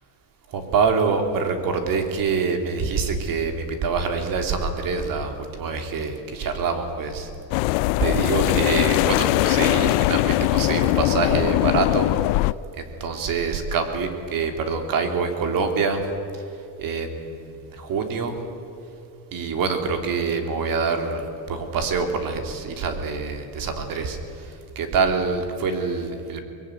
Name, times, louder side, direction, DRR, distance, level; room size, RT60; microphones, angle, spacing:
voice 1, 0.5-7.3 8.0-12.1 12.7-16.0 16.3-16.4 16.8-18.4 19.3-26.4, right 5 dB, 45° right, 6 dB, 3.3 m, -25 dB
sound 1, 7.5-12.5, left 21 dB, 85° left, 0.5 m, -21 dB
23.5 x 21.0 x 9.7 m, 2.7 s
cardioid pair, 150°, 45 cm